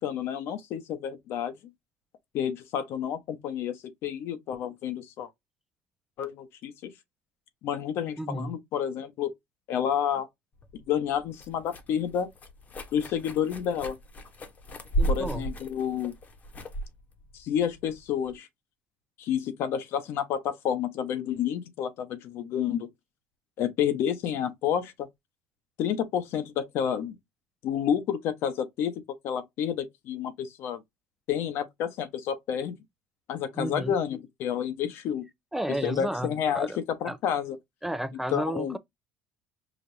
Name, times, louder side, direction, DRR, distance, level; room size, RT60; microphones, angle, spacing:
voice 1, 0.0-1.6 2.3-5.3 6.2-6.9 7.6-9.3 9.7-10.3 10.9-12.3 12.9-14.0 15.1-16.1 17.3-18.5 19.2-22.9 23.6-25.1 25.8-27.2 27.6-30.8 31.3-32.8 33.3-35.3 35.7-36.7 37.0-37.6 38.3-38.8, left 9 dB, 60° left, 0.9 m, -30 dB
voice 2, 8.2-8.5 15.0-15.5 33.6-33.9 35.5-36.3 36.5-36.8 37.0-37.2 37.8-38.8, right 1 dB, 5° right, 0.4 m, -32 dB
sound 1, 10.6-18.4, right 1 dB, 35° left, 1.0 m, -35 dB
5.1 x 2.5 x 2.6 m
supercardioid pair, 100°, 5 cm